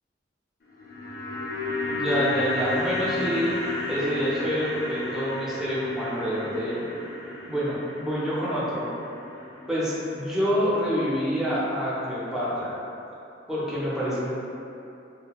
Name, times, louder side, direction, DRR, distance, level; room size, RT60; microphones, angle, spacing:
sound 1, 0.6-10.9 11.2-11.3, left 2 dB, 55° left, 0.4 m, -32 dB
voice 1, 1.8-3.5 3.9-6.8 7.5-8.9 9.7-12.7 13.5-14.3, equal, 5° right, -10 dB, 0.5 m, -27 dB
2.9 x 2.1 x 2.3 m, 2.7 s
head